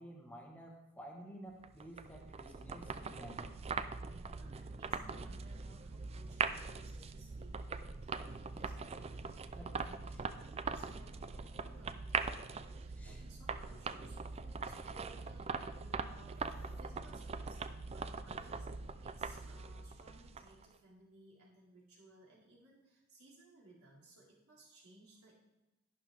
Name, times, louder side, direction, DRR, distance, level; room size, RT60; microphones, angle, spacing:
voice 1, 0.0-3.5 9.6-9.7 10.1-10.2 13.0-13.2 16.5-16.6, right 1 dB, 5° left, -1 dB, 1.3 m, -52 dB
sound 1, 1.6-20.7, right 5 dB, 25° right, 0.4 m, -42 dB
voice 2, 4.2-17.6 17.9-25.3, right 1 dB, 70° right, -6 dB, 4.4 m, -62 dB
11.5 x 11.0 x 3.5 m, 0.96 s
head